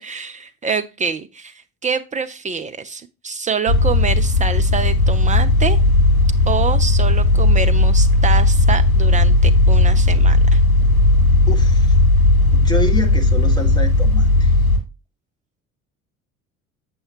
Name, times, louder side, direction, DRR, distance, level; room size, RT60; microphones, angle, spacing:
voice 1, 0.0-1.5 1.8-5.8 6.5-10.6, right 5 dB, 20° right, 0.5 m, -26 dB
sound 1, 3.7-14.8, left 2 dB, 80° left, 1.7 m, -15 dB
voice 2, 11.4-12.0 12.5-14.6, left 1 dB, 10° left, 1.5 m, -27 dB
7.7 x 6.7 x 2.9 m
figure-of-eight pair, 60°, 42 cm